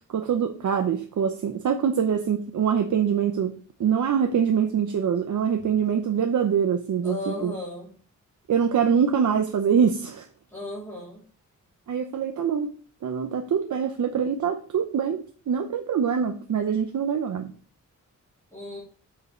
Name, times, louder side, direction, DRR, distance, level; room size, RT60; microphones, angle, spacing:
voice 1, 0.1-7.5 8.5-10.3 11.9-12.7 13.0-17.5, right 7 dB, 70° right, 0.8 m, -24 dB
voice 2, 7.0-7.9 10.5-11.2 18.5-18.8, left 1 dB, 10° left, 3.1 m, -35 dB
8.1 x 4.8 x 4.2 m
wide cardioid pair, 135°, 31 cm